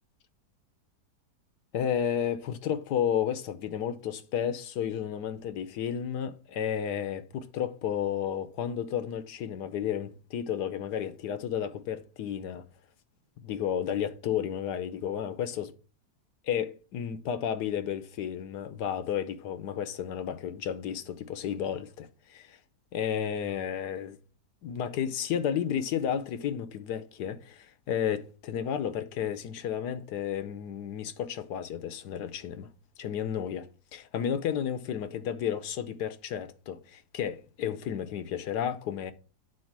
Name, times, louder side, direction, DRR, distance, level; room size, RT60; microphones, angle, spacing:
voice 1, 1.7-12.6 13.4-15.7 16.4-22.6 22.9-24.2 24.6-32.7 33.0-39.1, left 9 dB, 80° left, 1.3 m, -32 dB
9.1 x 4.1 x 5.9 m
omnidirectional pair, 1.8 m